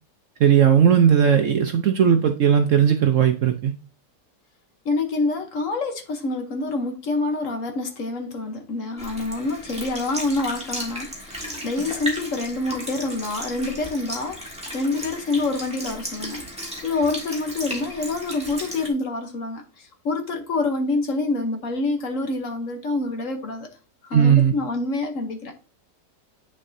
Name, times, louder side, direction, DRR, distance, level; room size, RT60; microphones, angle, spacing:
voice 1, 0.4-3.7 24.1-24.5, right 8 dB, 65° right, 0.8 m, -17 dB
voice 2, 4.8-16.5 16.8-23.7 24.0-25.6, left 3 dB, 55° left, 1.2 m, -27 dB
Sink (filling or washing) / Liquid, 9.0-18.9, equal, 5° right, 1.8 m, -35 dB
8.6 x 6.5 x 2.7 m
omnidirectional pair, 1.8 m